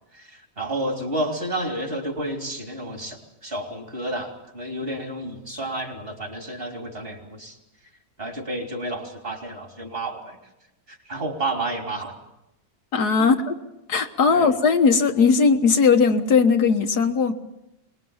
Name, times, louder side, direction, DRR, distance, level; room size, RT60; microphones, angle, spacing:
voice 1, 0.1-7.6 8.2-10.4 10.9-12.2 13.2-13.3 14.3-14.5, right 1 dB, 35° right, 3 dB, 3.6 m, -31 dB
voice 2, 12.9-13.6 13.9-17.3, left 5 dB, 90° left, 6 dB, 2.0 m, -18 dB
24.0 x 21.0 x 7.2 m, 0.89 s
omnidirectional pair, 1.7 m